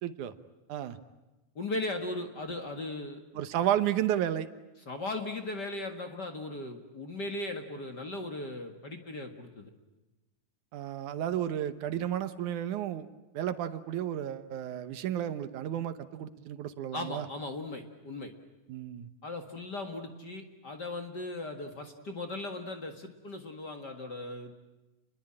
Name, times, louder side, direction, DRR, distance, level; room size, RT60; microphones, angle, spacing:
voice 1, 0.0-0.3 0.7-1.0 3.3-4.5 10.7-13.1 13.3-17.3 18.7-19.1, right 11 dB, 75° right, 11 dB, 2.5 m, -32 dB
voice 2, 1.6-3.2 4.9-9.7 16.9-18.3 19.2-24.5, left 2 dB, 40° left, 5 dB, 1.9 m, -38 dB
29.5 x 21.5 x 8.8 m, 1.1 s
omnidirectional pair, 3.6 m